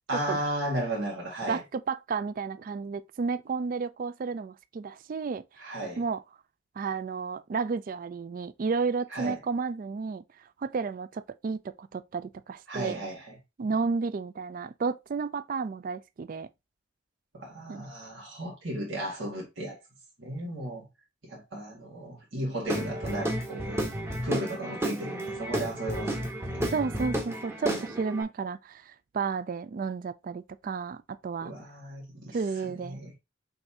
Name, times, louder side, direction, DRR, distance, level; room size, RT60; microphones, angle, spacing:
voice 1, 0.1-1.6 5.6-6.0 9.1-9.4 12.7-13.4 17.3-19.8 20.2-20.9 21.2-23.9 24.2-26.3 31.4-33.1, right 1 dB, 80° right, 2.1 m, -35 dB
voice 2, 1.5-5.4 6.0-6.2 6.8-10.2 10.6-13.0 13.6-16.5 17.7-17.9 26.7-31.5 32.3-33.0, right 5 dB, 45° right, 0.3 m, -32 dB
Guitar / Drum, 22.6-28.2, right 1 dB, 15° right, 1.0 m, -32 dB
5.6 x 3.3 x 2.8 m
head